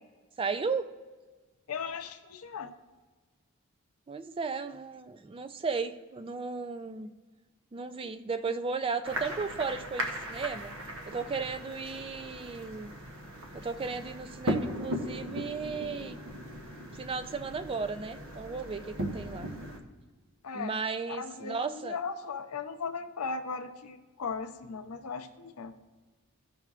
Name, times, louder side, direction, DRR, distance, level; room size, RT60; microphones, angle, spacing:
voice 1, 0.4-0.9 4.1-7.1 7.7-10.7 11.1-12.9 13.5-16.2 16.9-19.5 20.5-22.0, right 4 dB, 25° right, 10 dB, 0.4 m, -35 dB
voice 2, 1.7-2.7 20.4-20.8 21.1-21.6 21.8-25.7, left 5 dB, 90° left, 8 dB, 0.6 m, -37 dB
sound 1, 9.0-19.8, equal, 60° right, 0.8 m, -38 dB
14.5 x 5.6 x 2.4 m, 1.3 s
head